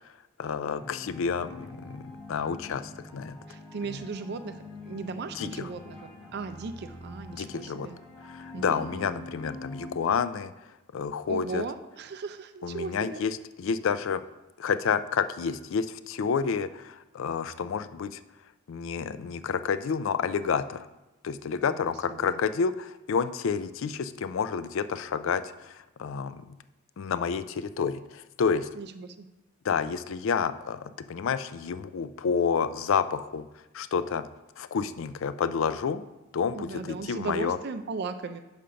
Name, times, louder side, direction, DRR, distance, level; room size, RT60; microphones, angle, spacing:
voice 1, 0.4-3.4 5.4-5.7 7.3-7.9 8.3-10.5 10.9-11.6 12.6-14.2 14.6-18.2 18.7-20.9 21.2-26.6 27.0-28.7 29.6-33.5 33.7-34.3 34.6-36.0 36.3-37.6, left 6 dB, 60° left, 13 dB, 0.3 m, -29 dB
sound 1, 0.8-9.9, left 2 dB, 5° left, 1.2 m, -45 dB
voice 2, 3.5-8.0 8.5-9.3 11.3-13.2 21.7-22.4 28.7-29.3 36.5-38.4, right 4 dB, 45° right, 9 dB, 0.4 m, -37 dB
6.4 x 5.1 x 5.7 m, 1.0 s
head